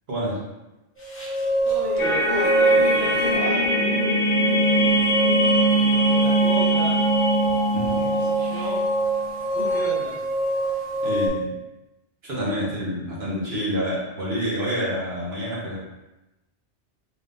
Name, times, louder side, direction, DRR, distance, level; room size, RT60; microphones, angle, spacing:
sound 1, 1.0-11.3, right 1 dB, 15° left, 0.5 m, -25 dB
voice 1, 1.6-4.0 5.9-7.0 7.9-8.8 9.5-10.2, right 1 dB, 20° right, -9 dB, 1.2 m, -34 dB
sound 2, 2.0-9.3, right 1 dB, 85° left, 1.2 m, -22 dB
voice 2, 7.7-8.1 11.0-11.5 12.2-15.8, equal, 65° right, -6 dB, 1.3 m, -28 dB
3.8 x 3.3 x 2.5 m, 0.98 s
omnidirectional pair, 1.1 m